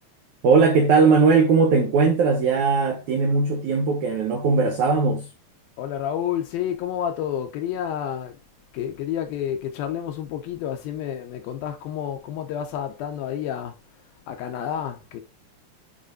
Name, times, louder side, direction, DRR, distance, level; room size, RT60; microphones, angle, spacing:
voice 1, 0.4-5.3, right 4 dB, 80° right, 1.7 m, -19 dB
voice 2, 5.8-8.4 8.7-13.8 14.3-15.2, left 9 dB, 75° left, 2.3 m, -29 dB
10.0 x 4.2 x 2.6 m
omnidirectional pair, 4.8 m